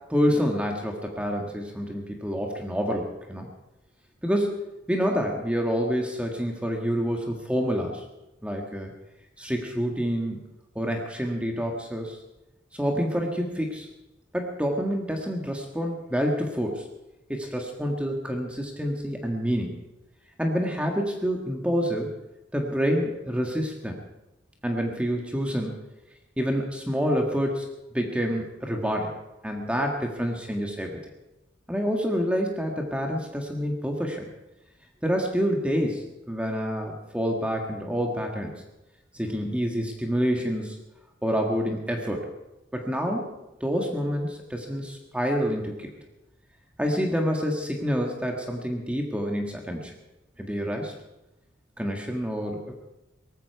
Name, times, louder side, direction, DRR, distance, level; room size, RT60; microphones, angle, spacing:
voice 1, 0.1-3.5 4.2-4.6 4.9-8.0 8.4-8.9 9.4-10.4 10.7-12.2 12.8-13.9 14.3-16.8 17.3-19.8 20.4-22.1 22.5-24.0 24.6-25.8 26.4-27.6 27.9-31.0 31.7-34.3 35.0-38.6 39.1-40.8 41.2-42.2 42.7-43.3 43.6-45.9 46.8-49.9 50.4-50.9 51.8-52.8, equal, 5° right, 1 dB, 1.6 m, -27 dB
18.5 x 15.0 x 4.7 m, 0.97 s
head